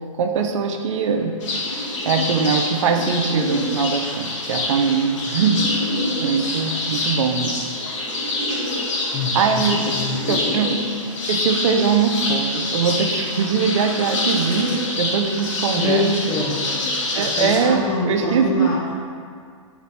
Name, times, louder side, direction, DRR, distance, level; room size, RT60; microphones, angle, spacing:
voice 1, 0.2-1.4 2.1-5.8 6.2-7.6 9.3-9.9 10.3-10.8 11.3-16.3 17.1-18.7, right 5 dB, 65° right, 5 dB, 0.4 m, -21 dB
sound 1, 1.4-17.6, left 2 dB, 65° left, 0.9 m, -26 dB
voice 2, 9.1-10.4 15.8-16.7 17.3-19.0, left 3 dB, 25° left, -3 dB, 0.5 m, -25 dB
3.9 x 2.5 x 3.4 m, 2.1 s
hypercardioid pair, 135°, 17 cm